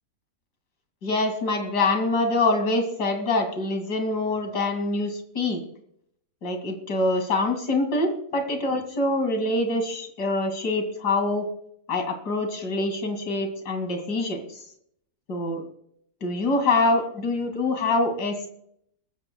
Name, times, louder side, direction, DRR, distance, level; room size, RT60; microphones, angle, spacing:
voice 1, 1.0-5.6 6.4-11.5 11.9-14.4 15.3-15.7 16.2-18.5, left 2 dB, 85° left, 5 dB, 3.0 m, -25 dB
22.5 x 13.5 x 2.3 m, 0.69 s
omnidirectional pair, 1.7 m